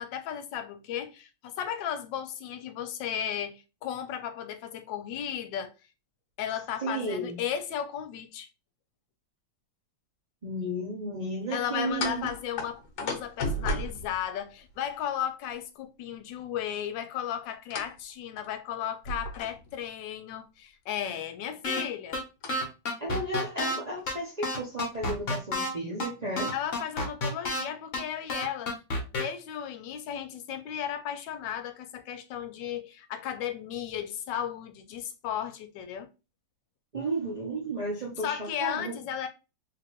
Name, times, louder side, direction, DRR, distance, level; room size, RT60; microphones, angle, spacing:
voice 1, 0.0-5.7 6.4-8.5 11.5-22.2 26.5-28.8 29.1-36.1 38.2-39.3, left 9 dB, 85° left, 1.3 m, -35 dB
voice 2, 6.8-7.4 10.4-12.3 23.0-26.5 36.9-39.0, right 1 dB, 55° right, 0.4 m, -33 dB
sound 1, 11.9-14.9 17.7-18.0 18.4-18.5 19.0-19.8 22.4-22.5 23.5-23.6 23.9-24.0 24.7-25.3, left 1 dB, 70° left, 1.4 m, -35 dB
sound 2, 21.6-21.8 22.1-22.2 22.5-23.8 24.1-24.2 24.4-25.7 26.0-26.1 26.4-27.6 27.9-28.0 28.3-29.2, left 2 dB, 50° left, 1.2 m, -29 dB
3.4 x 2.9 x 3.0 m
omnidirectional pair, 1.9 m